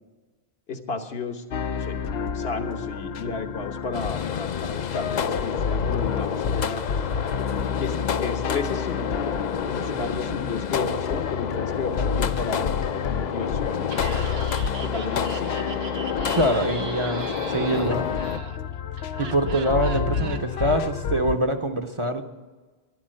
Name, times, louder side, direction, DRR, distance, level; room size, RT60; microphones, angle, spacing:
voice 1, 0.7-1.4 1.7-2.0 2.3-6.8 7.8-9.2 9.7-13.9 14.8-15.8, left 4 dB, 75° left, 5 dB, 1.4 m, -33 dB
sound 1, 1.5-21.4, left 6 dB, 90° left, 0.9 m, -30 dB
sound 2, 3.9-18.4, left 7 dB, 50° left, 0.6 m, -29 dB
Laughter, 13.8-20.8, right 6 dB, 80° right, 1.1 m, -40 dB
voice 2, 16.3-18.1 19.2-22.2, right 1 dB, 35° right, 5 dB, 0.8 m, -24 dB
12.0 x 10.5 x 7.7 m, 1.3 s
omnidirectional pair, 1.0 m